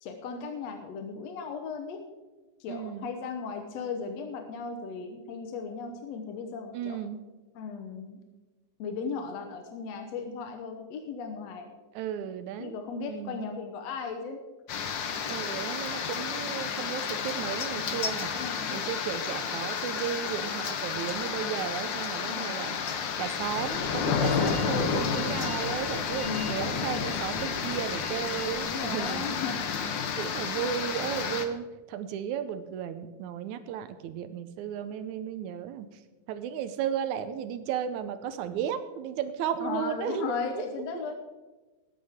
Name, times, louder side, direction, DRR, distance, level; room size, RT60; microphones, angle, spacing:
voice 1, 0.0-2.0 2.6-7.0 7.6-8.2 8.8-11.7 12.6-14.4 18.0-18.8 22.3-22.8 26.2-27.0 27.6-27.8 28.6-29.6 39.6-41.1, left 5 dB, 65° left, 4 dB, 2.0 m, -36 dB
voice 2, 2.7-3.1 6.7-7.2 12.0-12.8 13.1-13.5 15.3-18.3 18.7-22.8 23.2-29.4 30.2-35.9 36.3-40.7, right 9 dB, 80° right, 10 dB, 2.0 m, -34 dB
sound 1, 14.7-31.5, left 6 dB, 85° left, 1.0 m, -31 dB
sound 2, 23.4-29.4, right 4 dB, 55° right, 0.8 m, -48 dB
19.5 x 9.6 x 3.6 m, 1.2 s
omnidirectional pair, 3.5 m